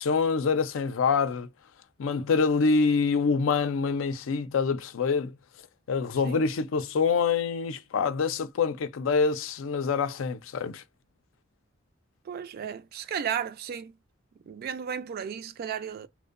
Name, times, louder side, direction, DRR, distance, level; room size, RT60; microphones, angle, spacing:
voice 1, 0.0-1.5 2.0-5.3 5.9-10.8, left 5 dB, 80° left, 0.4 m, -26 dB
voice 2, 12.3-13.9 14.5-16.1, right 8 dB, 50° right, 0.3 m, -34 dB
2.6 x 2.0 x 2.4 m
head